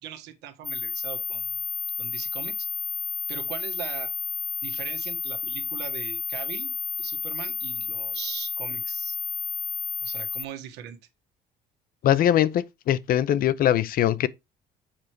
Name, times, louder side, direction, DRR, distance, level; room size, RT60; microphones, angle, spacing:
voice 1, 0.0-1.6 2.0-2.7 3.3-4.1 4.6-6.7 7.0-9.2 10.0-11.0, right 10 dB, 90° right, 1.5 m, -40 dB
sound 1, 0.6-10.4, left 4 dB, 10° left, 0.4 m, -31 dB
voice 2, 12.0-14.3, left 11 dB, 60° left, 0.7 m, -22 dB
7.4 x 4.9 x 4.5 m
cardioid pair, 110°, 17 cm